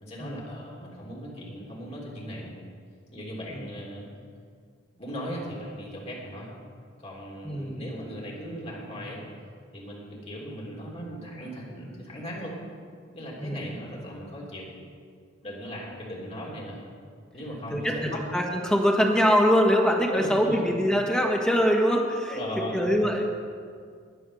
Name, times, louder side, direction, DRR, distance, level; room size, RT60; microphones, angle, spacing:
voice 1, 0.0-2.5 3.1-4.0 4.9-6.5 7.0-9.3 9.7-12.5 13.1-14.7 15.4-16.8 17.3-18.0 20.1-20.6 22.3-22.8, equal, 35° left, -4 dB, 3.2 m, -38 dB
voice 2, 7.4-7.8 13.4-13.6 17.7-22.4 22.7-23.2, equal, 5° left, 0 dB, 1.4 m, -23 dB
11.5 x 9.9 x 6.4 m, 2.1 s
head